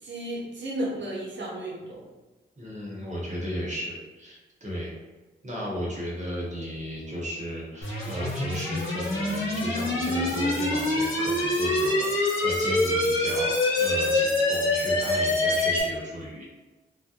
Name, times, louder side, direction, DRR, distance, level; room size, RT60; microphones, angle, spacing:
voice 1, 0.0-2.0, right 1 dB, 65° right, -4 dB, 0.9 m, -33 dB
voice 2, 2.6-4.9 5.4-16.4, equal, 35° right, -5 dB, 1.0 m, -34 dB
sound 1, 7.8-15.8, left 2 dB, 80° left, 0.8 m, -25 dB
2.3 x 2.1 x 2.7 m, 1.2 s
supercardioid pair, 45°, 21 cm